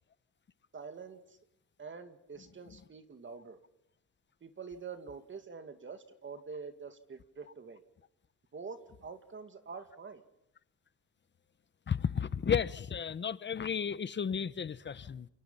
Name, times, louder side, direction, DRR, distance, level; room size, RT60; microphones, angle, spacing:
voice 1, 0.7-1.4 1.8-3.6 4.4-7.8 8.5-10.2, right 5 dB, 35° right, 2.3 m, -46 dB
voice 2, 11.9-15.3, left 7 dB, 35° left, 1.0 m, -33 dB
29.0 x 29.0 x 5.6 m
cardioid pair, 130°, 33 cm